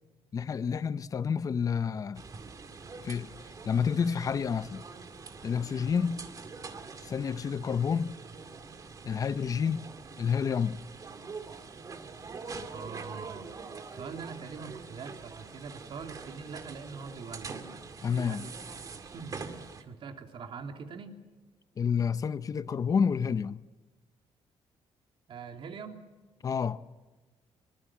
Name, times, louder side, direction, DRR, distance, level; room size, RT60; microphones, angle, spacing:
voice 1, 0.3-2.2 3.0-3.3 3.6-4.8 5.4-6.2 7.0-8.2 9.0-9.9 10.2-10.8 18.0-18.5 21.8-23.6 26.4-26.8, left 6 dB, 35° left, 0.7 m, -29 dB
sound 1, 2.1-19.8, right 4 dB, 35° right, 2.1 m, -44 dB
voice 2, 12.7-13.5 13.9-17.6 18.1-19.4 19.8-21.1 25.3-26.0, right 5 dB, 55° right, 3.0 m, -43 dB
25.5 x 24.0 x 7.3 m
cardioid pair, 170°, 11 cm